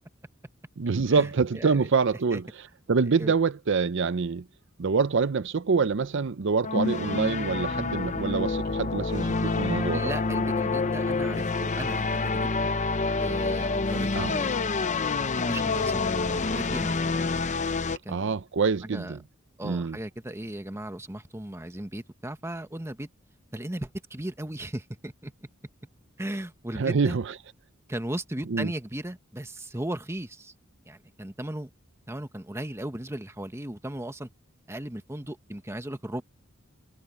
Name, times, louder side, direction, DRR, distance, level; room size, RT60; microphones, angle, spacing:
voice 1, 0.8-4.5 4.8-10.1 14.1-14.4 18.1-19.2 19.6-20.0 26.8-27.3 28.5-28.7, right 5 dB, 60° right, 0.6 m, -26 dB
voice 2, 1.5-1.9 2.3-2.4 3.2-3.4 9.9-12.7 13.2-17.0 18.0-18.4 18.8-19.1 19.6-23.1 23.5-25.3 26.2-27.2 27.9-30.5 30.9-31.7 32.1-34.3 34.7-36.2, right 1 dB, 15° right, 1.2 m, -36 dB
sound 1, 6.6-18.0, left 3 dB, 35° left, 0.7 m, -27 dB
head